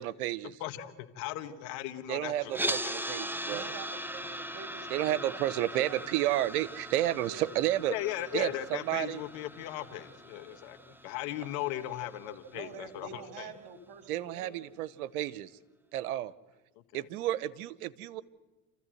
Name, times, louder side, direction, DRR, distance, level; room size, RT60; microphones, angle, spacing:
voice 1, 0.0-0.6 2.1-3.6 4.9-7.9 8.3-9.2 14.1-15.5 15.9-16.3 16.9-18.2, right 13 dB, 80° right, 19 dB, 0.9 m, -31 dB
voice 2, 0.6-2.5 2.8-2.9 7.9-13.5, left 13 dB, 70° left, 9 dB, 1.8 m, -37 dB
sound 1, 2.5-12.6, right 1 dB, 5° right, 0.9 m, -40 dB
voice 3, 3.5-6.1 7.3-7.6 11.4-11.5 12.5-14.7, right 5 dB, 55° right, 8 dB, 3.0 m, -47 dB
28.0 x 14.5 x 7.8 m, 1.2 s
hypercardioid pair, 95°, 44 cm